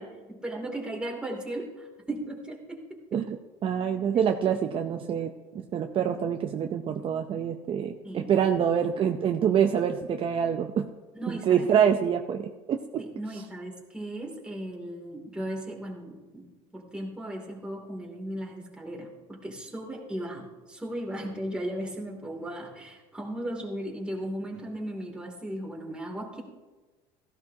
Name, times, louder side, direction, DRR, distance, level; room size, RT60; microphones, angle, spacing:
voice 1, 0.0-1.7 2.1-2.8 8.0-8.3 11.1-11.7 13.0-16.4 16.7-26.4, right 1 dB, 5° right, -1 dB, 2.7 m, -36 dB
voice 2, 3.6-10.9 11.3-13.0, right 8 dB, 40° right, 5 dB, 0.7 m, -26 dB
17.0 x 14.5 x 2.9 m, 1.2 s
cardioid pair, 125°, 14 cm